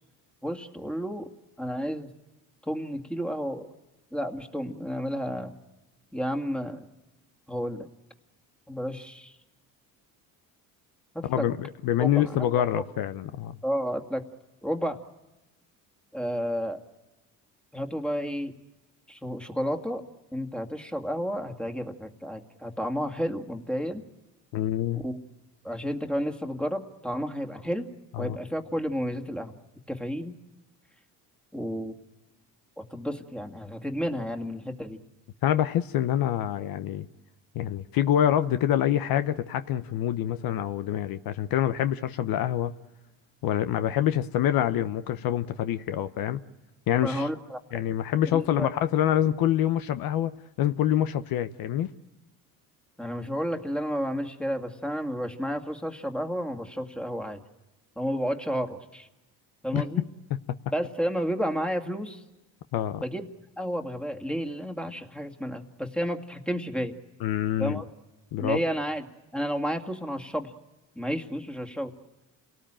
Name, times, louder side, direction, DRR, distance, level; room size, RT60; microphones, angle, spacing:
voice 1, 0.4-1.3 1.6-2.1 2.7-3.7 4.1-5.5 6.1-6.8 7.5-7.9 8.7-9.3 11.1-11.5 12.0-12.3 13.6-14.2 14.6-15.0 16.1-16.8 17.7-18.5 19.1-20.0 20.3-24.0 24.9-25.2 25.6-27.9 28.2-29.5 29.9-30.4 31.5-31.9 32.8-35.0 47.0-47.6 48.3-48.7 53.0-57.4 58.0-59.1 59.6-60.1 60.7-62.2 63.0-63.3 63.6-67.0 67.6-67.8 68.4-69.0 69.3-70.5 71.0-71.9, equal, 5° left, 4 dB, 2.2 m, -31 dB
voice 2, 11.3-13.6 24.5-25.0 28.1-28.4 35.4-37.1 37.5-42.7 43.4-46.4 46.9-47.3 47.7-50.3 50.6-51.9 59.7-60.1 62.7-63.0 67.2-67.8 68.3-68.6, left 11 dB, 65° left, 10 dB, 1.0 m, -26 dB
28.5 x 18.5 x 8.9 m, 1.1 s
cardioid pair, 100°, 38 cm